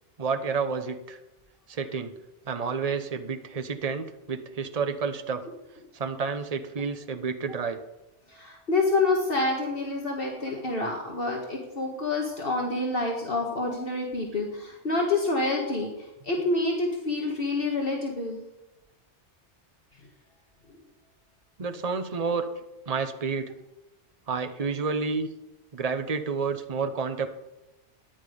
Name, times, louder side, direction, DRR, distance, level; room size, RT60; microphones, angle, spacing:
voice 1, 0.2-1.2 1.7-2.2 2.5-5.4 5.9-7.8 21.6-22.5 22.9-23.5 24.3-25.3 25.7-27.3, right 5 dB, 35° right, 8 dB, 1.0 m, -30 dB
voice 2, 8.3-18.4, left 2 dB, 50° left, -1 dB, 2.0 m, -27 dB
14.0 x 10.5 x 5.1 m, 0.98 s
omnidirectional pair, 1.2 m